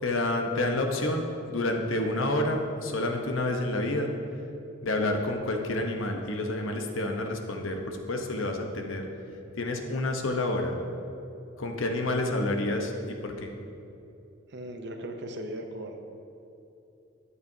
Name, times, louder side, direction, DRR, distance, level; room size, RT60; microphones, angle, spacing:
voice 1, 0.0-4.1 4.8-9.0 9.6-10.7 11.6-13.5, left 2 dB, 75° left, 3 dB, 1.0 m, -29 dB
voice 2, 14.5-16.0, right 1 dB, 55° right, 4 dB, 0.7 m, -38 dB
13.5 x 8.4 x 2.8 m, 2.8 s
head